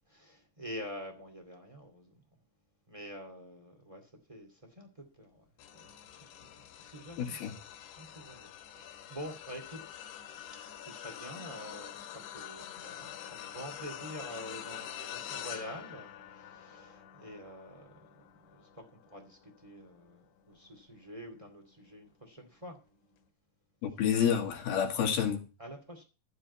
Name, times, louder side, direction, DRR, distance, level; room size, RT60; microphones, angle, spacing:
voice 1, 0.1-2.2 2.9-5.5 5.7-6.2 6.8-7.4 8.0-9.8 10.8-12.1 12.3-17.9 18.5-18.7 19.1-22.8 25.6-26.0, equal, 35° right, 0.5 m, -47 dB
sound 1, 5.6-21.1 21.6-21.9 23.1-23.2, left 10 dB, 85° left, 3.7 m, -46 dB
voice 2, 7.2-7.6 23.8-25.5, left 8 dB, 60° left, 3.6 m, -29 dB
14.5 x 5.2 x 8.4 m
omnidirectional pair, 5.2 m